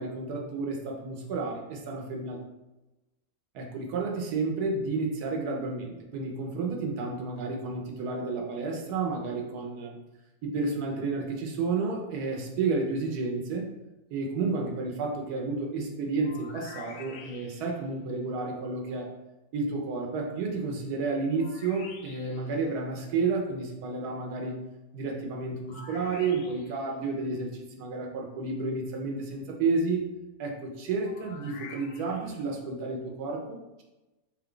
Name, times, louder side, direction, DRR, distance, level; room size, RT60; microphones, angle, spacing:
voice 1, 0.0-2.4 3.5-10.0 10.4-13.7 14.1-19.1 19.5-24.6 24.9-30.1 30.4-33.8, right 4 dB, 90° right, 1 dB, 1.3 m, -31 dB
sound 1, 16.2-17.9 21.4-22.6 25.7-26.9 31.0-32.4, left 5 dB, 70° left, 0.7 m, -47 dB
4.1 x 2.3 x 3.7 m, 1.0 s
omnidirectional pair, 1.6 m